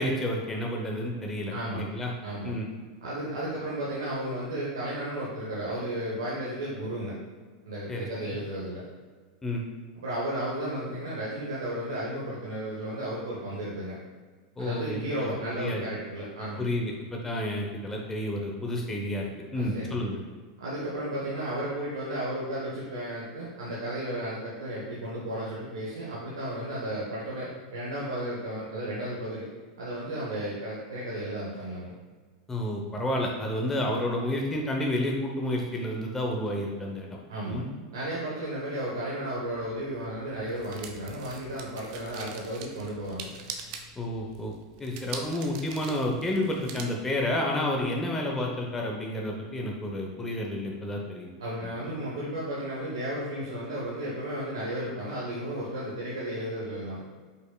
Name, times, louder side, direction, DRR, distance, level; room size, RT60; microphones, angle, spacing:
voice 1, 0.0-2.1 2.4-2.7 7.9-8.1 9.4-9.6 14.6-15.9 16.6-20.2 32.5-37.1 37.4-37.7 44.0-44.5 44.8-51.3, left 1 dB, 15° left, 0 dB, 0.8 m, -30 dB
voice 2, 1.5-1.8 2.2-2.6 3.0-7.2 7.6-8.8 10.0-14.0 14.6-16.6 19.5-20.0 20.6-29.5 29.8-31.9 37.3-37.6 37.9-43.3 51.4-57.0, right 1 dB, 85° right, -7 dB, 1.1 m, -33 dB
sound 1, 39.4-46.8, right 6 dB, 60° right, 0.6 m, -44 dB
5.3 x 4.2 x 2.3 m, 1.5 s
hypercardioid pair, 100°, 2 cm